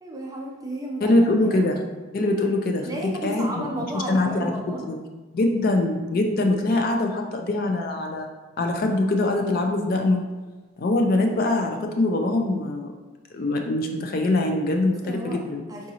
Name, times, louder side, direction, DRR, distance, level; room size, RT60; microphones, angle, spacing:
voice 1, 0.0-1.7 2.9-4.9 11.4-11.5 15.0-15.4 15.7-15.9, right 1 dB, 15° right, -1 dB, 0.5 m, -33 dB
voice 2, 1.0-1.8 2.1-4.5 4.9-5.0 5.3-8.3 8.6-10.2 10.8-12.9 13.3-15.6, left 2 dB, 45° left, 3 dB, 0.4 m, -23 dB
3.9 x 3.6 x 2.8 m, 1.2 s
head